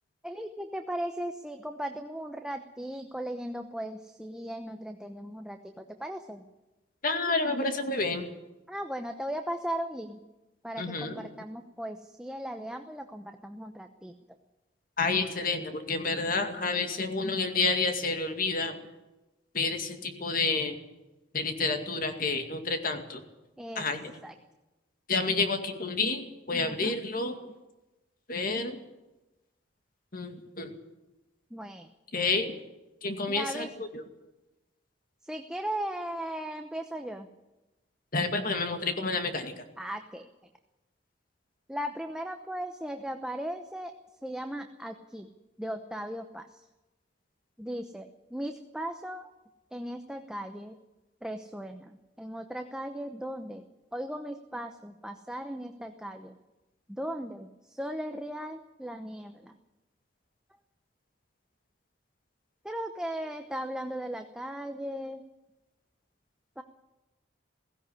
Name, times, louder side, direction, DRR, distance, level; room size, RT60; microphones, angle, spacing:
voice 1, 0.2-6.5 8.7-10.2 10.6-14.1 23.6-23.8 24.2-24.3 26.5-27.0 31.5-31.9 33.3-33.7 35.2-37.3 39.8-40.3 41.7-43.9 44.2-45.3 45.6-46.6 47.6-49.3 49.7-50.8 51.2-53.6 53.9-56.3 56.9-59.5 62.6-65.2 66.6-66.7, right 1 dB, 5° right, 5 dB, 0.9 m, -37 dB
voice 2, 7.0-8.3 10.8-11.2 15.0-18.8 19.5-20.8 21.3-23.2 23.8-24.1 25.1-27.4 28.3-28.8 30.1-30.7 32.1-32.6 33.0-34.0 38.1-39.5, left 3 dB, 50° left, 6 dB, 2.2 m, -29 dB
16.5 x 16.5 x 9.8 m, 1.0 s
head